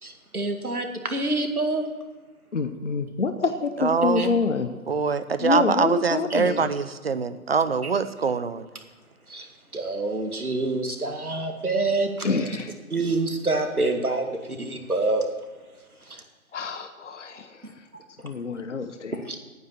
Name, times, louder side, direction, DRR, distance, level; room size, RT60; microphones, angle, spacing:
voice 1, 0.0-1.9 4.2-4.3 6.3-6.4 9.3-9.5 9.7-12.5 12.9-15.2 16.1-16.2 18.5-18.6 19.3-19.4, right 2 dB, 80° right, 4 dB, 2.2 m, -27 dB
voice 2, 2.5-4.7 5.4-6.7 12.2-12.7 16.5-17.8 18.2-19.2, left 4 dB, 55° left, 8 dB, 0.9 m, -27 dB
voice 3, 3.8-4.4 4.9-8.7, right 5 dB, 45° right, 13 dB, 0.7 m, -24 dB
11.0 x 9.3 x 7.4 m, 1.3 s
figure-of-eight pair, 145°, 43 cm